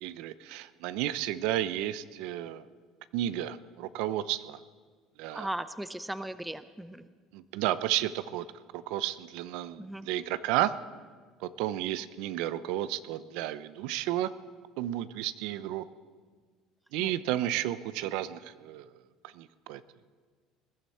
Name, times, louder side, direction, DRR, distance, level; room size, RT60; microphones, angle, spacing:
voice 1, 0.0-2.6 3.1-4.6 5.2-5.5 7.3-8.5 8.7-10.7 11.4-14.3 14.8-15.9 16.9-18.9 19.2-19.8, right 13 dB, 75° right, 15 dB, 0.5 m, -32 dB
voice 2, 5.3-7.1 9.8-10.1 17.0-17.1, right 1 dB, 5° right, 13 dB, 0.5 m, -37 dB
20.5 x 11.0 x 4.3 m, 1.5 s
cardioid pair, 145°, 0 cm